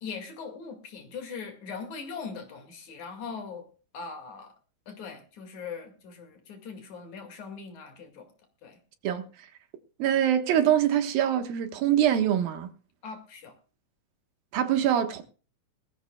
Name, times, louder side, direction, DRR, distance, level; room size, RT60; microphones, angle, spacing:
voice 1, 0.0-3.7 3.9-4.5 4.9-8.3 8.6-8.8 13.0-13.5, left 5 dB, 60° left, 3.5 m, -40 dB
voice 2, 10.0-12.7 14.5-15.2, right 10 dB, 85° right, 3.2 m, -24 dB
21.5 x 14.0 x 2.3 m
omnidirectional pair, 4.0 m